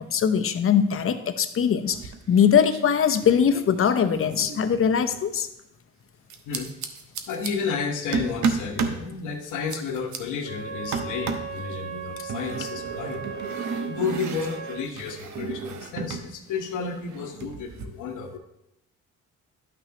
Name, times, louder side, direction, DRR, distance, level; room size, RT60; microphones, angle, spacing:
voice 1, 0.0-5.5, left 7 dB, 45° left, 9 dB, 0.7 m, -21 dB
sound 1, 1.9-2.4 2.7-5.3 6.3-7.5 8.1-9.0 9.4-10.2 10.9-11.6 12.3-16.3 16.6-17.8, right 5 dB, 70° right, 0.9 m, -33 dB
voice 2, 6.4-6.8 7.3-13.3 13.9-18.4, left 5 dB, 85° left, 4 dB, 1.1 m, -32 dB
Wind instrument woodwind instrument, 10.4-14.9, right 6 dB, 35° right, 2.2 m, -37 dB
11.5 x 5.8 x 2.9 m, 0.85 s
cardioid pair, 90°, 30 cm